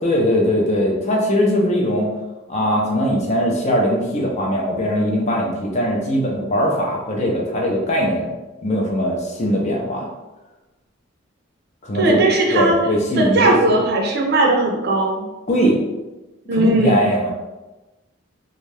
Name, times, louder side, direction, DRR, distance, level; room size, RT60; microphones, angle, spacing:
voice 1, 0.0-2.1 2.5-8.3 8.6-10.1 11.8-12.2 12.5-13.8 15.5-15.8 16.5-17.3, equal, 35° left, -1 dB, 0.5 m, -20 dB
voice 2, 12.0-12.8 13.2-15.2 16.5-17.1, right 2 dB, 50° right, -1 dB, 0.5 m, -18 dB
2.6 x 2.3 x 3.2 m, 1.1 s
head